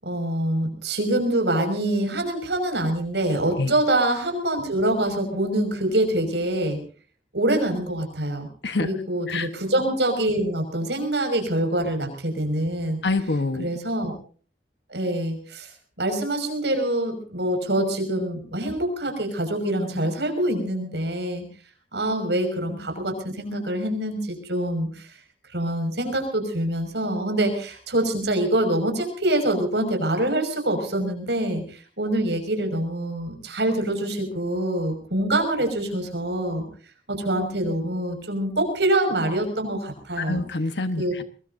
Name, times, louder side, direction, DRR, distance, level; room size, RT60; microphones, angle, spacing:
voice 1, 0.0-6.8 7.3-8.5 8.8-13.0 13.6-14.1 14.9-15.7 16.0-21.4 21.9-25.1 25.5-36.6 37.1-40.4 41.0-41.1, right 1 dB, 75° right, 5 dB, 5.8 m, -25 dB
voice 2, 13.0-13.7 40.2-41.2, left 3 dB, 75° left, 9 dB, 1.2 m, -26 dB
24.0 x 20.5 x 2.7 m, 0.41 s
head